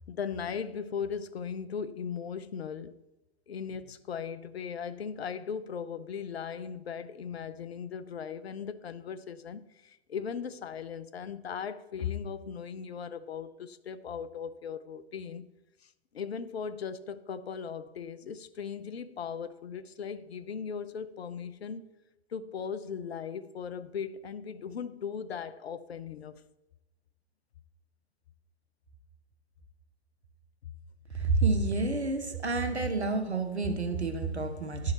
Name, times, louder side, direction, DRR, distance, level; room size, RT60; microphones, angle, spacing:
voice 1, 0.1-3.0 3.5-15.5 15.8-21.9 22.3-26.5, left 7 dB, 75° left, 0.6 m, -38 dB
voice 2, 31.1-34.9, right 3 dB, 90° right, 0.9 m, -29 dB
10.5 x 3.8 x 4.1 m
figure-of-eight pair, 105°, 32 cm